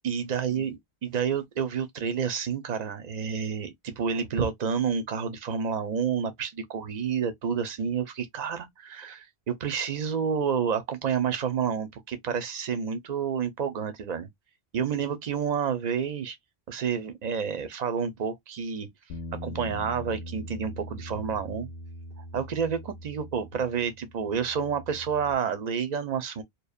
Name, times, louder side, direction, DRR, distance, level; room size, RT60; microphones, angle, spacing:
voice 1, 0.0-14.3 14.7-16.4 16.7-18.9 19.4-21.7 22.2-26.4, right 7 dB, 50° right, 0.6 m, -29 dB
Bass guitar, 19.1-25.3, left 1 dB, 70° left, 0.7 m, -42 dB
2.8 x 2.0 x 2.3 m
omnidirectional pair, 1.1 m